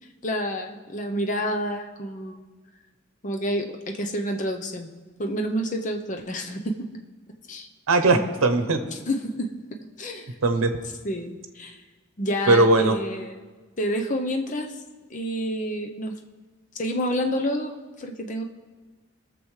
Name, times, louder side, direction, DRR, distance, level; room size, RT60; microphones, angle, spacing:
voice 1, 0.2-2.4 3.2-4.9 5.2-6.7 7.5-7.7 9.1-9.5 10.0-10.3 11.0-11.8 12.2-13.3 13.8-14.7 15.1-16.1 16.7-17.7 18.0-18.4, equal, 35° left, 4 dB, 0.7 m, -28 dB
voice 2, 7.9-8.8 10.4-10.7 12.5-13.0, right 2 dB, 90° right, 8 dB, 0.8 m, -19 dB
20.0 x 6.8 x 3.2 m, 1.3 s
head